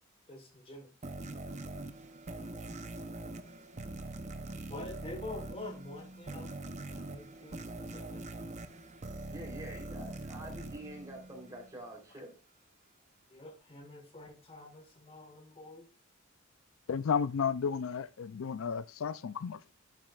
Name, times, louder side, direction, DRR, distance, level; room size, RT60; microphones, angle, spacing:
voice 1, 0.3-0.9 4.7-6.5 6.9-8.2 13.3-15.9, left 2 dB, 30° left, 1.4 m, -46 dB
sound 1, 1.0-11.8, right 2 dB, 35° right, 0.8 m, -43 dB
voice 2, 9.3-12.3, right 1 dB, 15° right, 3.5 m, -46 dB
voice 3, 16.9-19.7, left 6 dB, 80° left, 0.4 m, -33 dB
11.0 x 7.7 x 2.4 m
head